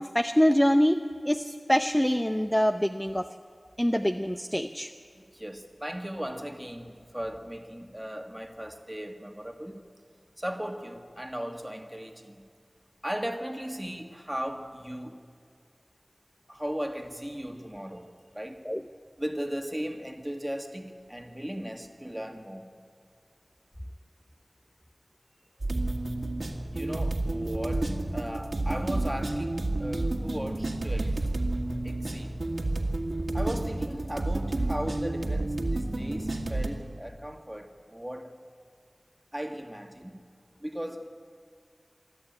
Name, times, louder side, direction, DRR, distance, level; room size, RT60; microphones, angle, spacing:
voice 1, 0.0-3.3 3.8-4.9 18.7-18.8, equal, 10° left, 6 dB, 0.7 m, -25 dB
voice 2, 5.2-9.8 10.4-12.4 13.0-15.2 16.5-18.1 18.3-18.6 19.2-22.7 26.7-31.3 31.8-32.4 33.3-38.3 39.3-40.2 40.6-41.1, equal, 10° right, 4 dB, 2.0 m, -37 dB
sound 1, 25.6-36.7, right 2 dB, 75° right, 2.0 m, -30 dB
24.0 x 13.5 x 8.9 m, 2.1 s
wide cardioid pair, 50°, 0 cm